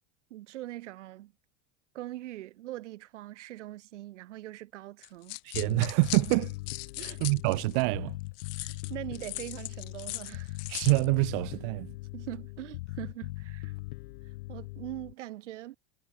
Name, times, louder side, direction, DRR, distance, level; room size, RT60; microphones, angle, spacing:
voice 1, 0.3-1.3 1.9-5.4 7.0-7.2 8.6-10.6 12.1-13.8 14.5-15.8, right 15 dB, 80° right, 3.6 m, -42 dB
sound 1, 5.0-7.8 8.4-11.1, left 33 dB, 45° left, 1.2 m, -39 dB
voice 2, 5.4-6.5 7.0-8.2 10.7-12.0, right 36 dB, 50° right, 0.9 m, -26 dB
Bass guitar, 5.5-15.1, left 22 dB, 65° left, 0.7 m, -40 dB
supercardioid pair, 150°, 35 cm